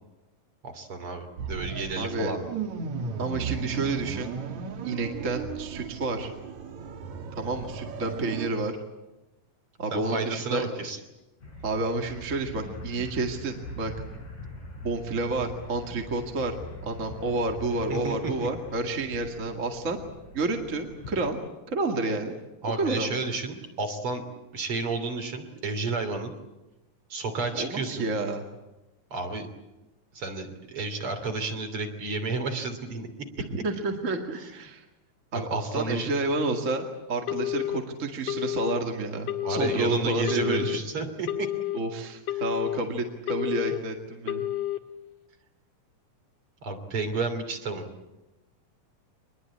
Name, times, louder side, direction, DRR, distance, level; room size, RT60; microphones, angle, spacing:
voice 1, 0.6-2.4 9.9-11.0 17.9-18.3 22.6-24.2 24.5-26.3 27.1-28.1 29.1-29.5 30.1-33.1 34.3-34.5 35.5-36.1 39.4-41.5 46.6-47.9, right 3 dB, 45° right, 6 dB, 3.6 m, -31 dB
sound 1, 1.4-8.5, right 5 dB, 60° right, 3.2 m, -35 dB
voice 2, 2.0-2.3 3.2-4.3 4.8-6.3 7.4-8.7 9.8-10.7 11.6-13.9 14.8-20.0 20.3-21.4 21.7-22.4 22.8-23.2 27.5-28.4 33.6-34.8 35.3-40.7 41.7-44.4, right 2 dB, 25° right, 3 dB, 2.0 m, -30 dB
sound 2, 11.4-21.3, left 1 dB, 70° left, 6.4 m, -42 dB
Telephone, 37.3-37.8 38.3-38.8 39.3-39.8 40.3-40.8 41.3-41.8 42.3-42.8 43.3-43.8 44.3-44.8, left 14 dB, 45° left, 1.9 m, -30 dB
25.5 x 21.5 x 8.7 m, 1.0 s
omnidirectional pair, 3.8 m